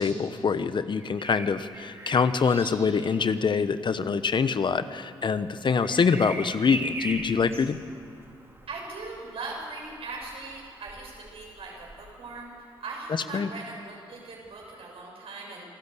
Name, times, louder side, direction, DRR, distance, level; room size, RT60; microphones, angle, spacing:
voice 1, 0.0-7.8 13.3-13.5, left 5 dB, 50° left, 12 dB, 1.0 m, -25 dB
Bird vocalization bird call bird song, 0.9-12.7 14.4-14.6, right 2 dB, 25° right, 4.2 m, -42 dB
voice 2, 5.7-6.0 8.7-12.5 12.8-15.6, right 3 dB, 70° right, -1 dB, 6.9 m, -40 dB
26.0 x 12.0 x 8.4 m, 2.5 s
supercardioid pair, 55°, 10 cm